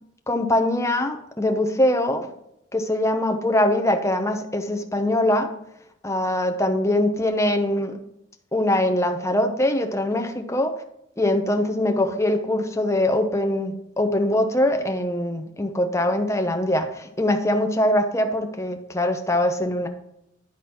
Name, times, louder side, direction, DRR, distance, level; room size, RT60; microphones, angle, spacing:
voice 1, 0.3-2.3 2.7-5.5 6.0-8.0 8.5-10.7 11.2-19.9, left 1 dB, 15° left, 6 dB, 0.8 m, -22 dB
11.0 x 4.0 x 4.4 m, 0.80 s
head